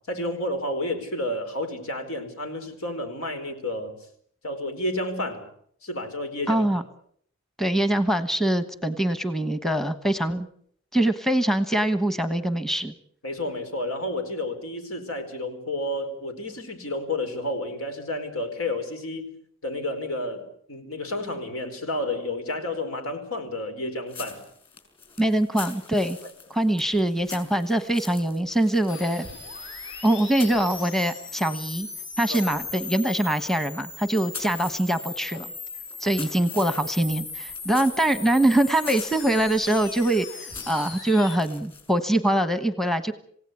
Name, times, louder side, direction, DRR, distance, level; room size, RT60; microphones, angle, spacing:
voice 1, 0.1-3.9 4.4-5.5 5.8-6.7 13.2-19.3 19.6-24.5 26.2-26.3 32.3-32.4, left 1 dB, 80° left, 7 dB, 4.6 m, -31 dB
voice 2, 6.5-6.8 7.6-10.5 10.9-12.9 25.2-26.2 26.5-29.3 30.0-31.9 32.2-35.5 36.0-43.1, right 1 dB, ahead, 10 dB, 1.1 m, -23 dB
sound 1, 24.1-31.5 31.8-42.1, left 5 dB, 25° left, 6.2 m, -45 dB
sound 2, 28.9-41.4, left 4 dB, 60° left, 6.3 m, -38 dB
27.5 x 17.0 x 8.4 m, 0.65 s
head